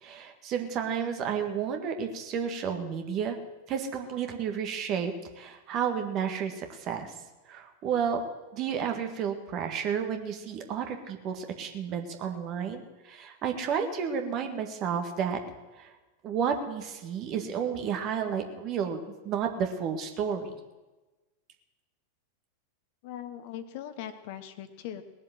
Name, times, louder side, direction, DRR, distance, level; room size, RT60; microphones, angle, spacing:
voice 1, 0.0-3.4 3.7-7.1 7.5-8.2 8.5-15.4 15.8-15.9 16.2-19.0 19.3-20.5, right 7 dB, 35° right, 5 dB, 1.7 m, -31 dB
voice 2, 23.0-25.0, left 10 dB, 50° left, 10 dB, 1.2 m, -40 dB
19.5 x 7.4 x 7.6 m, 1.2 s
figure-of-eight pair, 90°, 0 cm